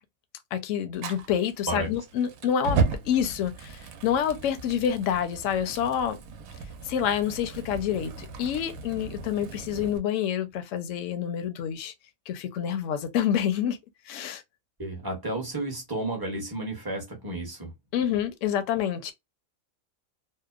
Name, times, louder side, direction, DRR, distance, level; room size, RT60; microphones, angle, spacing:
voice 1, 0.5-6.2 6.8-11.9 12.3-13.8 14.1-14.4 17.9-19.1, left 9 dB, 70° left, 0.9 m, -28 dB
Fire, 1.0-10.0, right 4 dB, 80° right, 1.0 m, -34 dB
voice 2, 14.8-17.7, right 2 dB, 20° right, 0.8 m, -32 dB
2.8 x 2.1 x 2.3 m
omnidirectional pair, 1.5 m